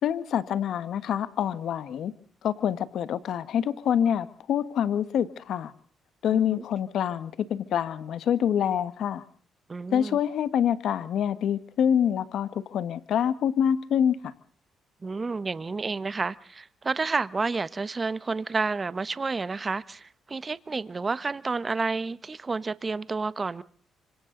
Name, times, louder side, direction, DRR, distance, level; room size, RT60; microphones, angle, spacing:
voice 1, 0.0-2.1 2.4-5.7 6.2-9.2 9.9-14.3, left 9 dB, 70° left, 1.4 m, -26 dB
voice 2, 6.3-6.6 9.7-10.2 15.0-23.6, right 4 dB, 30° right, 1.1 m, -30 dB
26.5 x 25.5 x 3.9 m
cardioid pair, 90°, 0 cm